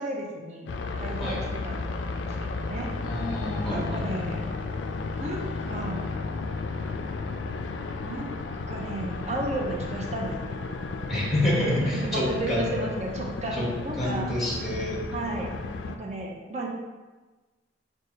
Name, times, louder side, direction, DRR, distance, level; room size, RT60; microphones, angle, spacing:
voice 1, 0.0-1.8 2.2-2.9 3.7-4.5 5.2-6.1 8.0-8.3 8.7-10.5 11.1-11.4 11.7-14.3 15.1-15.5 16.0-16.7, right 2 dB, 40° right, 0 dB, 0.6 m, -33 dB
sound 1, 0.7-16.0, left 3 dB, 75° left, 0.3 m, -33 dB
voice 2, 3.0-4.0 11.1-12.8 13.5-13.7 13.9-15.0, left 1 dB, ahead, -6 dB, 1.1 m, -28 dB
6.3 x 2.4 x 2.9 m, 1.2 s
head